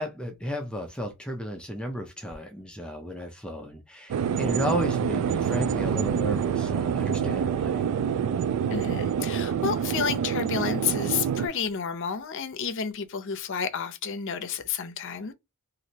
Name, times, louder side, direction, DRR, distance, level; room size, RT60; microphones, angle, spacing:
voice 1, 0.0-7.8, equal, 5° left, 0.5 m, -33 dB
sound 1, 4.1-11.5, right 8 dB, 85° right, 0.3 m, -27 dB
voice 2, 8.7-15.3, left 6 dB, 60° left, 0.6 m, -30 dB
3.1 x 2.6 x 2.7 m
head